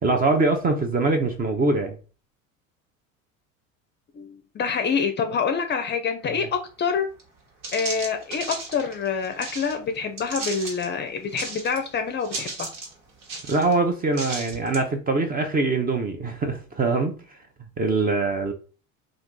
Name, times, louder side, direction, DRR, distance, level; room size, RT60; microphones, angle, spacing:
voice 1, 0.0-2.0 13.5-17.2 17.8-18.5, right 3 dB, 20° right, 0.5 m, -23 dB
voice 2, 4.1-7.1 7.7-12.7, left 6 dB, 25° left, 0.5 m, -26 dB
sound 1, 7.2-7.3 7.6-9.7 10.2-10.9 11.3-11.9 12.2-12.9 13.2-13.7 14.1-14.8, right 3 dB, 70° right, 1.3 m, -34 dB
2.5 x 2.4 x 3.7 m
hypercardioid pair, 80°, 40 cm